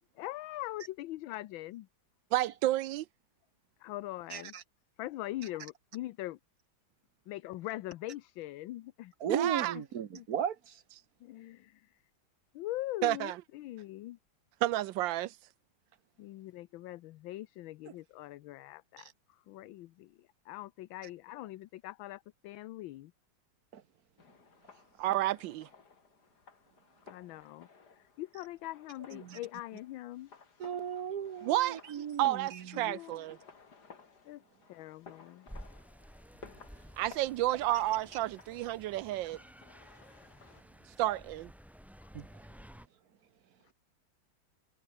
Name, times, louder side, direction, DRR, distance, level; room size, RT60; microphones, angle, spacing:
voice 1, 0.1-1.9 3.8-4.5 5.0-6.4 7.3-9.1 9.4-9.5 9.7-9.8 10.1-10.3 11.2-12.0 12.5-14.2 16.2-23.1 27.1-30.3 32.7-33.2 34.2-34.4 34.7-35.5 42.0-42.1, left 16 dB, 75° left, 1.4 m, -42 dB
voice 2, 2.3-3.0 9.3-9.7 13.0-13.4 14.6-15.3 25.0-25.7 31.4-33.4 37.0-39.4 41.0-41.5, right 15 dB, 75° right, 1.2 m, -31 dB
voice 3, 4.3-4.6 9.2-10.8 23.7-23.8 29.2-29.4 30.6-32.9 41.1-41.2 42.1-42.3, right 8 dB, 50° right, 1.4 m, -36 dB
sound 1, 24.2-40.6, left 5 dB, 50° left, 3.1 m, -57 dB
sound 2, 35.5-42.9, equal, ahead, 0.5 m, -53 dB
omnidirectional pair, 2.2 m